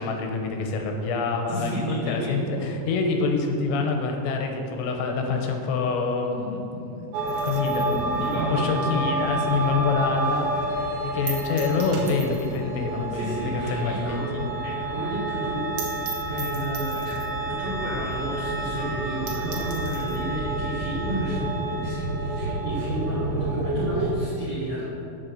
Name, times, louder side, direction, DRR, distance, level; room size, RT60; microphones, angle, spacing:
voice 1, 0.0-10.5 11.0-14.5, left 4 dB, 85° left, 3 dB, 3.6 m, -26 dB
voice 2, 1.5-2.3 8.2-8.8 10.8-11.0 13.1-14.3 14.6-16.0 16.3-24.9, right 1 dB, 55° right, -10 dB, 2.1 m, -32 dB
sound 1, 7.1-24.1, right 2 dB, 90° right, 4.1 m, -29 dB
sound 2, 7.3-9.9 10.2-10.3 10.7-10.8 11.3-12.7 13.0-13.1 13.3-13.4 13.8-13.9 14.2-14.3 14.6-14.7 15.0-15.1 15.4-15.5 15.8-17.4 18.1-18.2 18.6-18.7 19.0-19.1 19.3-20.3, right 7 dB, 70° right, 3.5 m, -39 dB
8.3 x 7.7 x 6.5 m, 2.9 s
omnidirectional pair, 5.9 m